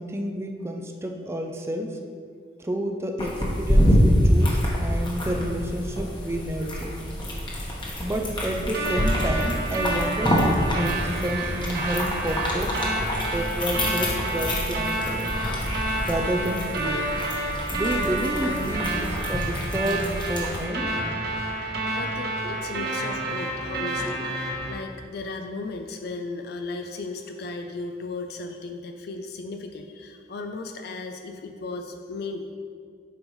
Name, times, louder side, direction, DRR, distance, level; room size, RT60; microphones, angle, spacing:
voice 1, 0.0-2.0 2.6-7.0 8.0-12.8 13.3-15.3 16.1-17.1 17.7-21.1 24.0-24.2, equal, 15° right, 4 dB, 0.4 m, -30 dB
sound 1, 3.2-20.6, equal, 25° left, 1.2 m, -26 dB
sound 2, 8.7-24.7, right 2 dB, 60° right, 1.2 m, -29 dB
voice 2, 21.9-24.3 24.7-32.6, left 3 dB, 60° left, 5 dB, 0.4 m, -35 dB
8.7 x 5.3 x 3.1 m, 2.1 s
head